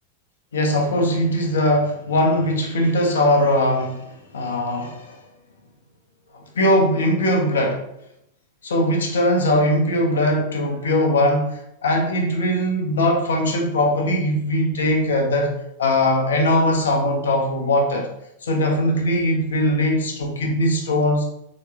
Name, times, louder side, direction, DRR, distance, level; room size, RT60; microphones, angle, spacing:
voice 1, 0.5-5.2 6.6-7.8 8.6-18.1 18.4-21.2, left 1 dB, 65° left, 1 dB, 0.8 m, -20 dB
4.2 x 3.0 x 2.9 m, 0.79 s
figure-of-eight pair, 90°, 0 cm